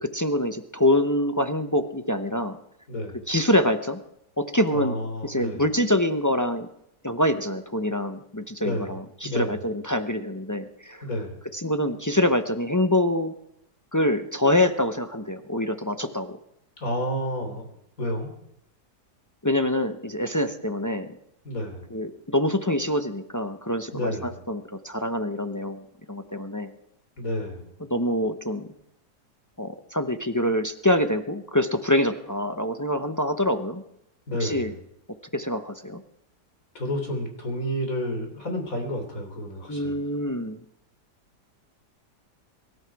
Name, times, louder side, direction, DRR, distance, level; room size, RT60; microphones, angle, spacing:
voice 1, 0.0-2.6 3.3-4.0 4.4-5.0 5.2-6.7 7.0-11.0 11.5-13.3 13.9-16.4 19.4-21.1 21.9-25.8 26.1-26.7 27.9-28.7 29.6-33.8 34.4-34.7 35.3-36.0 39.7-40.6, left 1 dB, 25° left, 7 dB, 0.4 m, -25 dB
voice 2, 2.9-3.2 4.7-5.6 8.6-8.9 9.2-9.6 11.0-11.4 16.8-17.7 18.0-18.3 21.4-21.9 23.9-24.4 27.2-27.7 34.3-34.8 36.7-40.0, equal, 50° left, 4 dB, 3.7 m, -30 dB
24.0 x 12.0 x 4.7 m, 0.78 s
omnidirectional pair, 1.8 m